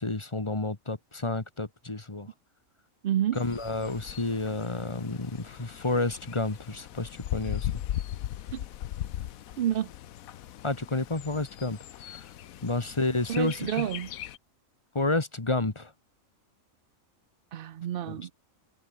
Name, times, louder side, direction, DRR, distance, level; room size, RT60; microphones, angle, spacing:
voice 1, 0.0-2.3 3.3-7.7 10.6-12.2 12.6-13.9 14.9-15.9 18.1-18.2, left 2 dB, 20° left, 1.5 m, -30 dB
voice 2, 3.0-3.4 8.5-8.6 9.6-9.9 13.3-14.1 17.5-18.3, right 11 dB, 60° right, 0.6 m, -29 dB
Bird, 3.3-14.4, left 12 dB, 85° left, 1.2 m, -39 dB
omnidirectional pair, 1.4 m